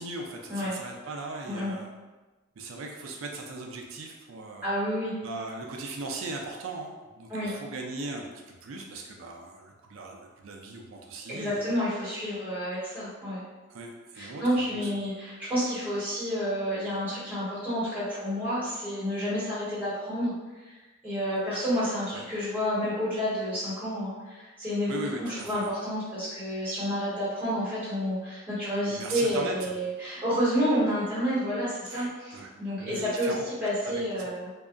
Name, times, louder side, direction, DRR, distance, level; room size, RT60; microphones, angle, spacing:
voice 1, 0.0-1.9 2.6-4.7 5.2-11.7 13.7-14.9 22.1-22.2 24.9-25.7 28.9-29.8 31.9-32.5 32.8-33.5 33.8-34.3, right 2 dB, 90° right, 1 dB, 0.4 m, -39 dB
voice 2, 4.6-5.1 7.3-7.5 11.3-13.4 14.1-20.3 20.6-20.7 21.0-34.5, equal, 10° right, -11 dB, 1.2 m, -30 dB
2.7 x 2.3 x 2.4 m, 1.2 s
head